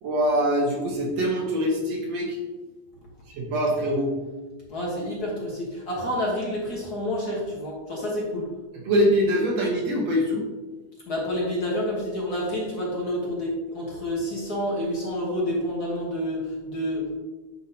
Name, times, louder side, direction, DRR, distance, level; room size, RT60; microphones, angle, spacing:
voice 1, 0.0-2.4 3.3-4.2 8.9-10.5, equal, 65° right, -2 dB, 2.2 m, -23 dB
voice 2, 4.7-8.5 11.1-17.1, left 1 dB, 45° left, -4 dB, 1.3 m, -29 dB
9.4 x 5.7 x 2.8 m, 1.2 s
omnidirectional pair, 3.3 m